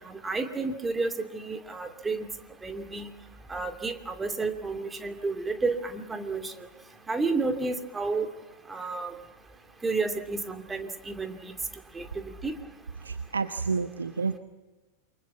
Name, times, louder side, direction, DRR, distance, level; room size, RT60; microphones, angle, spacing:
voice 1, 0.1-2.3 2.6-3.1 3.5-6.7 7.1-8.3 8.7-9.1 9.8-11.5 11.9-12.5, right 3 dB, 15° right, 6 dB, 2.6 m, -31 dB
voice 2, 13.0-14.4, right 4 dB, 75° right, 10 dB, 1.1 m, -30 dB
28.5 x 24.5 x 7.4 m, 1.2 s
figure-of-eight pair, 90°, 0 cm